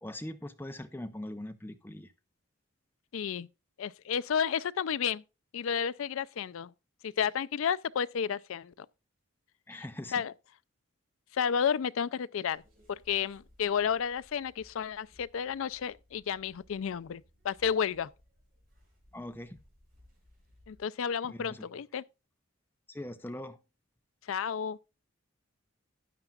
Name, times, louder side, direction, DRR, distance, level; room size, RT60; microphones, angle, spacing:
voice 1, 0.0-2.1 9.7-10.2 19.1-19.6 21.3-21.7 22.9-23.6, left 1 dB, 10° left, 0.7 m, -41 dB
voice 2, 3.1-3.5 3.8-5.2 5.5-6.7 7.0-8.9 9.7-9.8 10.1-10.3 11.3-12.6 12.9-18.1 20.7-22.0 24.3-24.8, left 7 dB, 70° left, 0.4 m, -32 dB
sound 1, 12.5-20.8, left 1 dB, 45° right, 6.5 m, -63 dB
13.0 x 9.0 x 2.4 m
head